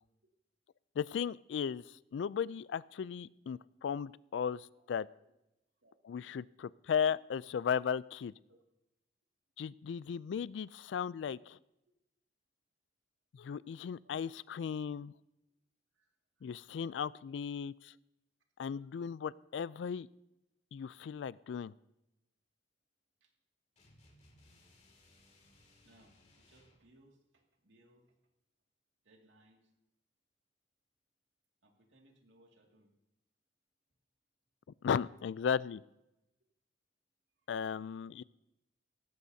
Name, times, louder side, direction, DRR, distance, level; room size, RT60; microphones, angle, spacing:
voice 1, 1.0-1.8 2.1-4.6 4.9-5.1 6.0-8.3 9.6-11.6 13.3-15.1 16.4-17.9 18.6-20.1 20.7-21.7 34.8-35.8 37.5-38.2, left 7 dB, 75° left, 20 dB, 0.3 m, -36 dB
voice 2, 14.0-14.4 15.9-16.7 23.2-23.3 25.6-28.1 29.0-29.7 31.6-32.9, right 1 dB, 90° right, 1 dB, 2.2 m, -67 dB
sound 1, 23.8-26.8, left 1 dB, 40° left, 2.3 m, -64 dB
17.5 x 14.5 x 2.7 m, 0.90 s
head